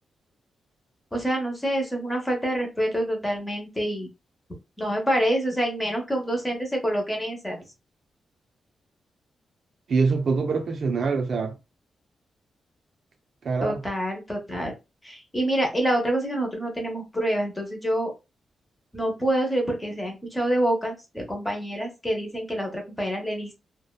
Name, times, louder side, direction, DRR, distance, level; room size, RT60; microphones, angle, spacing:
voice 1, 1.1-4.1 4.8-7.6 13.6-14.7 15.0-18.1 18.9-23.5, right 1 dB, 10° left, 0.8 m, -27 dB
voice 2, 9.9-11.6 13.4-13.8, right 4 dB, 50° right, 0.4 m, -24 dB
2.7 x 2.1 x 2.2 m
wide cardioid pair, 170°, 0 cm